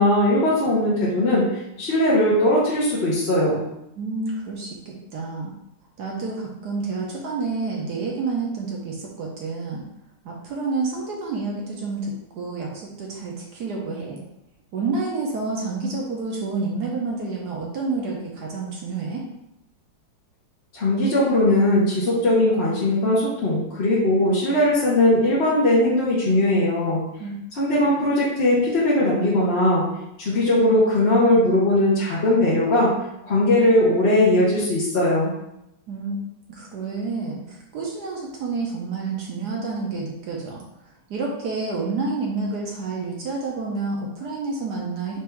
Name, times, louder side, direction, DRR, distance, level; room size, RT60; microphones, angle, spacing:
voice 1, 0.0-3.6 20.7-27.0 27.6-29.8 30.2-32.9 33.2-35.3, left 1 dB, 40° left, -7 dB, 1.0 m, -19 dB
voice 2, 4.0-5.5 6.0-9.8 10.2-14.2 14.7-19.2 27.2-27.3 35.9-36.2 36.5-40.6 41.1-45.2, right 3 dB, 65° right, -1 dB, 1.2 m, -29 dB
4.7 x 2.6 x 4.5 m, 0.85 s
omnidirectional pair, 2.0 m